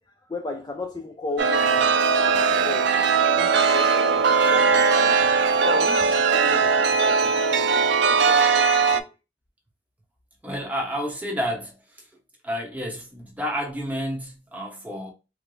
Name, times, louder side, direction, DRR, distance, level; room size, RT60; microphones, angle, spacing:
voice 1, 0.2-1.9 2.3-2.9 3.3-5.3 5.6-9.1, left 2 dB, 25° left, 0.4 m, -36 dB
Chime, 1.4-9.0, right 5 dB, 80° right, 0.4 m, -19 dB
voice 2, 10.4-11.8 12.4-15.1, equal, 10° right, 0.8 m, -30 dB
4.7 x 2.1 x 2.5 m
head